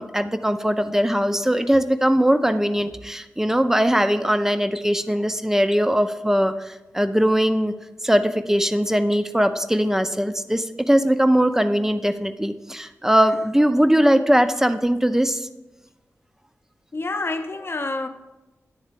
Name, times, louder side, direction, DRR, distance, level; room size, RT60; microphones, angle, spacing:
voice 1, 0.0-7.7 8.0-15.5, equal, 10° right, 0.5 m, -20 dB
voice 2, 16.9-18.1, left 2 dB, 45° left, 0.7 m, -27 dB
9.5 x 3.6 x 5.1 m
cardioid pair, 40°, 6 cm